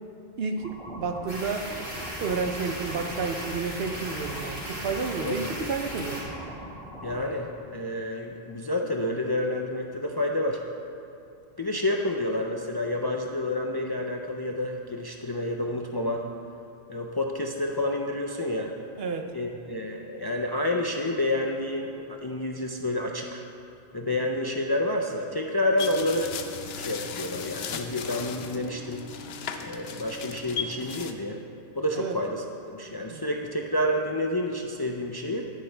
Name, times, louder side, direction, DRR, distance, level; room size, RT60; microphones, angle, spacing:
voice 1, 0.4-1.8 2.2-6.3 19.0-19.3 32.0-32.2 33.1-33.3, right 5 dB, 70° right, 5 dB, 1.0 m, -31 dB
sound 1, 0.6-7.2, equal, 5° left, 1.8 m, -42 dB
sound 2, 1.3-6.2, equal, 45° right, 3.0 m, -37 dB
voice 2, 7.0-10.6 11.6-16.3 16.9-18.7 19.3-23.4 23.9-26.3 26.9-29.1 29.6-31.4 31.8-35.5, left 1 dB, 35° left, 1 dB, 0.4 m, -29 dB
sound 3, 25.8-31.1, left 6 dB, 75° left, 0.9 m, -36 dB
12.0 x 10.0 x 3.4 m, 2.6 s
omnidirectional pair, 1.1 m